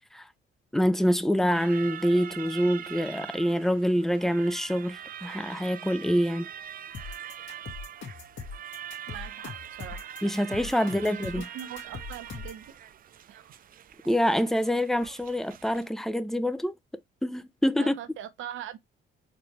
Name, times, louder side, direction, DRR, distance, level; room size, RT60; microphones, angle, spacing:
voice 1, 0.7-6.5 10.2-11.5 14.1-16.7 17.2-17.9, equal, ahead, 0.5 m, -26 dB
sound 1, 1.5-15.9, right 10 dB, 45° right, 0.4 m, -43 dB
sound 2, 6.9-12.6, left 5 dB, 70° left, 2.0 m, -41 dB
voice 2, 9.1-10.1 10.8-12.7 13.3-13.6 17.8-18.8, right 10 dB, 80° right, 0.8 m, -42 dB
4.3 x 3.1 x 3.2 m
cardioid pair, 90°, 20 cm